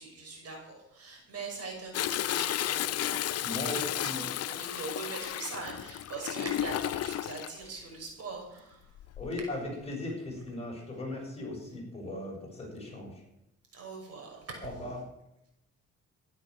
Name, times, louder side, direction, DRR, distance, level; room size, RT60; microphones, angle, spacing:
voice 1, 0.0-9.0 13.7-14.7, right 3 dB, 55° right, 1 dB, 5.8 m, -42 dB
Toilet flush, 1.9-7.5 9.0-9.4 9.9-10.0, left 13 dB, 55° left, 0.5 m, -33 dB
voice 2, 3.4-4.2 9.2-13.2 14.6-15.0, left 2 dB, 20° left, -1 dB, 7.0 m, -38 dB
14.0 x 11.5 x 6.5 m, 0.84 s
cardioid pair, 90°, 30 cm